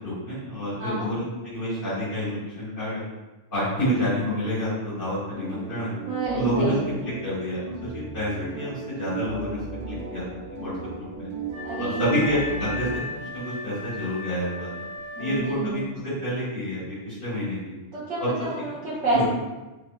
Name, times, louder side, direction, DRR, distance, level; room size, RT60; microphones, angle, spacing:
voice 1, 0.0-3.0 3.5-5.9 6.3-6.7 7.2-11.3 11.8-14.8 15.2-17.8 18.2-18.3 19.1-19.3, equal, 45° left, -11 dB, 1.7 m, -29 dB
sound 1, 5.3-13.0, right 5 dB, 90° right, 0.3 m, -36 dB
voice 2, 6.1-6.9 11.6-12.2 15.1-15.9 17.9-19.3, right 2 dB, 60° right, -6 dB, 1.4 m, -29 dB
Wind instrument woodwind instrument, 11.5-15.9, left 3 dB, 30° right, 0.7 m, -37 dB
3.1 x 2.8 x 2.3 m, 1.1 s
omnidirectional pair, 1.3 m